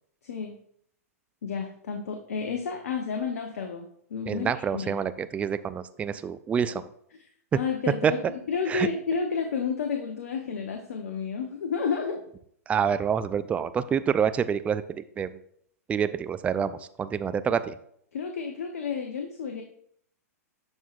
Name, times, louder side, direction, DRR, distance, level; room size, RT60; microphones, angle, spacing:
voice 1, 0.2-0.6 1.4-4.9 7.5-8.2 8.5-12.2 18.1-19.6, left 5 dB, 70° left, 4 dB, 0.8 m, -31 dB
voice 2, 4.3-6.8 8.0-8.1 8.7-8.9 12.7-15.3 15.9-17.8, right 7 dB, 15° right, 13 dB, 0.3 m, -27 dB
13.0 x 4.4 x 2.4 m, 0.67 s
hypercardioid pair, 110°, 9 cm